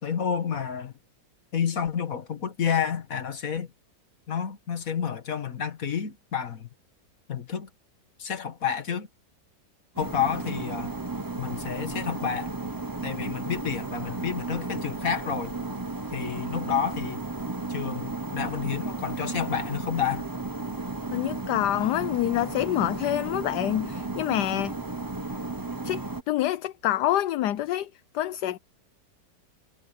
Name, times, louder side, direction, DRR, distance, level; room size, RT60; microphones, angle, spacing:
voice 1, 0.0-0.9 1.5-3.7 4.3-6.7 7.3-7.7 8.2-9.1 10.0-11.0 11.4-12.5 13.0-15.5 16.1-17.2 17.7-20.3, left 7 dB, 50° left, 2.0 m, -30 dB
sound 1, 10.0-26.2, right 3 dB, 15° right, 0.8 m, -34 dB
voice 2, 21.1-24.8 25.8-28.6, left 13 dB, 70° left, 1.2 m, -27 dB
omnidirectional pair, 1.9 m